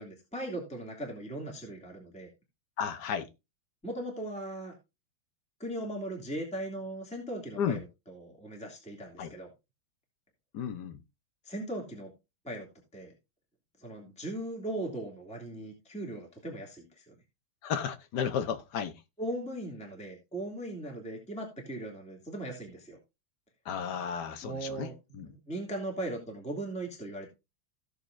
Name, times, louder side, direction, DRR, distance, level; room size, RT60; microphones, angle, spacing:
voice 1, 0.0-2.3 3.8-4.7 5.6-9.5 11.4-12.1 12.4-12.7 12.9-13.1 13.8-17.1 19.2-23.0 24.4-27.3, right 1 dB, 5° left, 2.3 m, -38 dB
voice 2, 2.8-3.3 7.6-7.8 9.2-9.3 10.5-11.0 17.6-18.9 23.6-25.3, left 7 dB, 55° left, 1.4 m, -33 dB
16.0 x 6.7 x 2.6 m
omnidirectional pair, 2.4 m